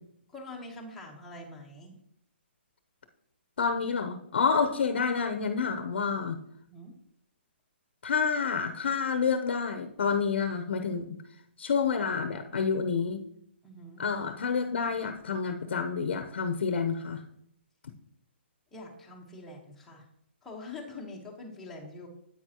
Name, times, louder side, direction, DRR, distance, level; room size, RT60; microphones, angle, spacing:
voice 1, 0.3-2.0 6.7-6.9 13.6-14.0 18.7-20.1 20.4-22.1, left 2 dB, 5° left, -3 dB, 1.2 m, -44 dB
voice 2, 3.6-6.4 8.0-11.2 11.6-13.2 14.0-17.2, left 5 dB, 60° left, 7 dB, 0.9 m, -28 dB
9.3 x 8.7 x 3.0 m, 0.72 s
hypercardioid pair, 175°, 6 cm